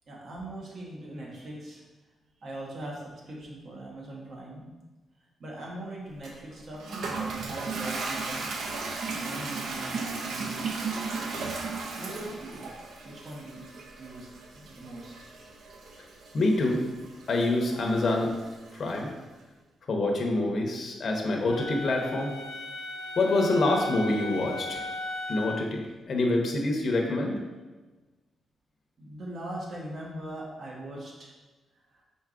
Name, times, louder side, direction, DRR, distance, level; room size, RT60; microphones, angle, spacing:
voice 1, 0.1-1.8 2.4-4.7 5.4-8.5 9.0-10.7 12.0-12.7 13.0-13.6 14.0-15.6 29.0-31.3 31.7-32.0, right 1 dB, 55° right, -3 dB, 1.1 m, -41 dB
Toilet flush, 6.2-19.0, right 4 dB, 75° right, 0.5 m, -36 dB
voice 2, 16.3-16.8 17.3-18.3 18.7-19.1 19.9-22.3 23.2-24.8 25.3-27.4, left 2 dB, 45° left, 0 dB, 0.6 m, -26 dB
Wind instrument woodwind instrument, 21.5-25.6, left 2 dB, 90° left, 0.5 m, -37 dB
4.5 x 3.9 x 2.4 m, 1.2 s
cardioid pair, 130°, 0 cm